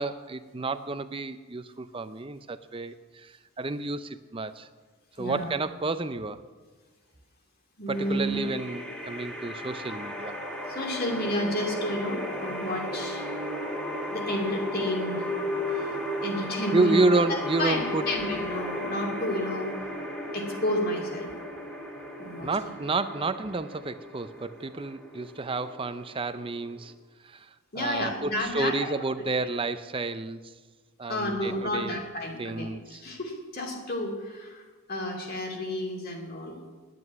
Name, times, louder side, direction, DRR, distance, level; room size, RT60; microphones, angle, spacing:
voice 1, 0.0-4.7 5.2-6.4 7.9-10.4 16.7-18.1 22.4-26.9 27.2-27.5 27.8-30.4 31.0-32.0 32.4-33.0, right 3 dB, 25° right, 11 dB, 0.5 m, -30 dB
voice 2, 5.2-5.5 7.8-8.4 10.7-13.2 14.1-15.3 15.7-16.0 16.2-17.0 17.3-19.9 20.3-21.3 22.2-22.5 27.7-28.9 31.1-36.6, left 1 dB, 45° left, 0 dB, 2.7 m, -31 dB
sound 1, 7.9-26.9, left 1 dB, 5° left, 1.8 m, -35 dB
10.5 x 9.3 x 9.7 m, 1.4 s
head